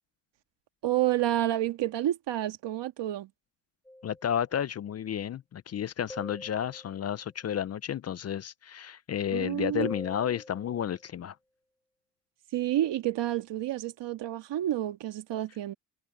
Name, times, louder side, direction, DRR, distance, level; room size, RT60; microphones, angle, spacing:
voice 1, 0.8-3.3 9.3-9.9 12.5-15.7, right 13 dB, 75° right, 1.7 m, -29 dB
sound 1, 3.8-4.5 6.1-7.2 9.8-11.1, left 1 dB, 5° left, 5.6 m, -44 dB
voice 2, 4.0-11.3, left 9 dB, 35° left, 0.5 m, -32 dB
cardioid pair, 115°, 43 cm